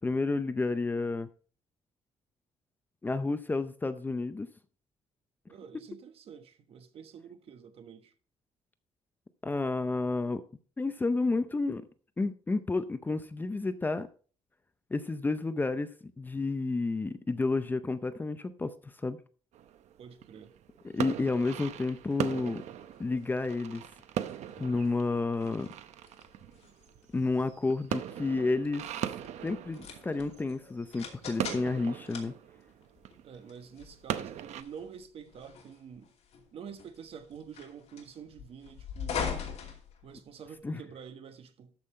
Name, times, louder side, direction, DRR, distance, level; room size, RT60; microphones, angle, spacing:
voice 1, 0.0-1.3 3.0-4.5 9.4-10.4 10.8-11.8 12.2-14.1 14.9-19.2 20.9-22.6 23.0-23.8 24.6-25.7 27.1-28.9 29.4-32.3 40.6-40.8, left 3 dB, 15° left, 0.5 m, -31 dB
voice 2, 5.5-8.1 20.0-20.5 33.2-36.1 36.5-39.3 40.0-41.7, right 7 dB, 55° right, 1.2 m, -48 dB
sound 1, 19.5-34.6, right 10 dB, 75° right, 0.7 m, -39 dB
sound 2, 21.3-40.6, left 6 dB, 65° left, 2.7 m, -44 dB
13.0 x 5.5 x 4.3 m
cardioid pair, 155°, 12 cm